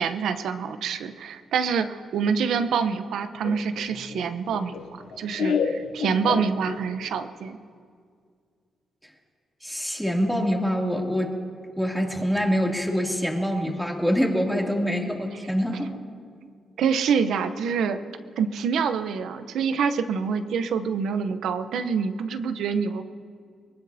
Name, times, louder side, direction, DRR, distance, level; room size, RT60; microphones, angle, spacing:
voice 1, 0.0-4.7 5.2-7.6 16.4-16.5 16.8-18.0 18.4-23.0, right 6 dB, 80° right, 10 dB, 0.8 m, -26 dB
Laughter, 3.4-7.1, left 6 dB, 80° left, 1.0 m, -30 dB
voice 2, 9.6-11.3 11.8-15.9, equal, ahead, 0 dB, 2.7 m, -25 dB
23.5 x 20.0 x 2.8 m, 2.1 s
cardioid pair, 65°, 0 cm